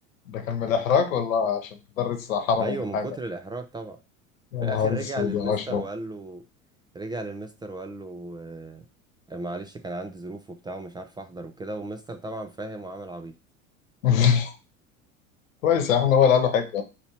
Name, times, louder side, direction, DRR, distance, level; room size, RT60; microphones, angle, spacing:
voice 1, 0.3-1.7 2.0-3.0 4.5-5.8 14.0-14.6 15.6-16.8, left 7 dB, 80° left, 7 dB, 1.0 m, -23 dB
voice 2, 2.6-4.0 4.6-6.5 6.9-8.9 9.3-13.3, right 2 dB, 10° right, 6 dB, 0.3 m, -35 dB
4.3 x 2.7 x 4.3 m, 0.29 s
hypercardioid pair, 80°, 40 cm